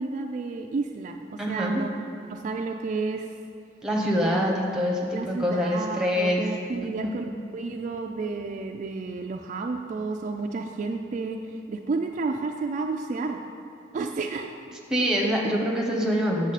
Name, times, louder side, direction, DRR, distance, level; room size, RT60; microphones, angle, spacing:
voice 1, 0.0-1.9 2.3-3.3 4.2-4.3 4.7-4.8 5.1-7.2 7.5-11.4 11.7-13.4 13.9-14.5 15.5-15.7, right 3 dB, 45° right, 3 dB, 0.3 m, -31 dB
voice 2, 1.4-1.8 3.8-5.0 5.3-6.5 6.9-7.2 14.9-16.5, equal, 5° right, -1 dB, 1.0 m, -25 dB
7.4 x 7.2 x 4.1 m, 2.4 s
head